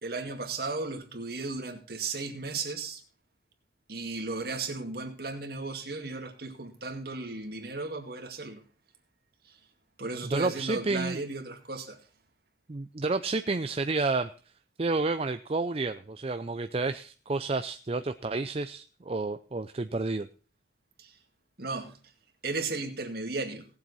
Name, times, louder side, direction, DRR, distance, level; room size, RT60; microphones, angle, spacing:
voice 1, 0.0-3.0 3.9-8.6 10.0-12.0 21.0-21.1 21.6-21.9 22.4-23.7, right 3 dB, 55° right, 2.2 m, -35 dB
voice 2, 10.2-11.2 12.7-14.3 14.8-20.3, right 3 dB, 30° right, 0.5 m, -30 dB
18.5 x 7.6 x 4.1 m
head